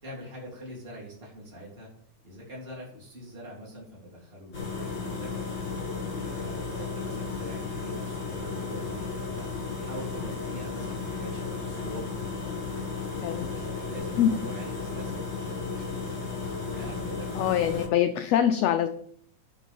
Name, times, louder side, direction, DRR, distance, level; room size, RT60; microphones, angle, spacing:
voice 1, 0.0-1.9 2.2-5.3 6.2-9.5 9.8-12.1 13.4-16.2 16.6-17.9, equal, 20° right, -4 dB, 3.4 m, -44 dB
sound 1, 4.5-17.9, left 4 dB, 30° left, 2.0 m, -34 dB
voice 2, 13.2-13.5 14.2-14.3 17.3-18.9, left 10 dB, 90° left, 8 dB, 1.4 m, -24 dB
10.0 x 5.4 x 5.4 m, 0.64 s
omnidirectional pair, 3.5 m